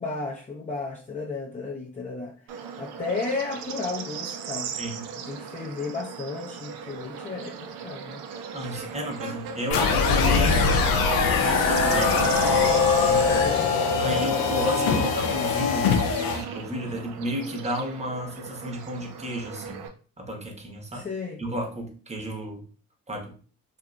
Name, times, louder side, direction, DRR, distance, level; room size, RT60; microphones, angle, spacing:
voice 1, 0.0-4.7 5.2-8.3 13.3-13.7 20.9-21.4, left 3 dB, 20° left, 0.5 m, -34 dB
Bird / Insect, 2.5-19.9, right 6 dB, 80° right, 0.5 m, -38 dB
voice 2, 4.8-5.1 8.5-11.0 11.4-12.5 14.0-19.9 20.2-21.0 21.4-22.6 23.1-23.3, equal, 20° right, 0.9 m, -32 dB
sound 1, 9.7-16.4, left 4 dB, 75° left, 0.6 m, -22 dB
2.6 x 2.5 x 2.2 m
hypercardioid pair, 45°, 37 cm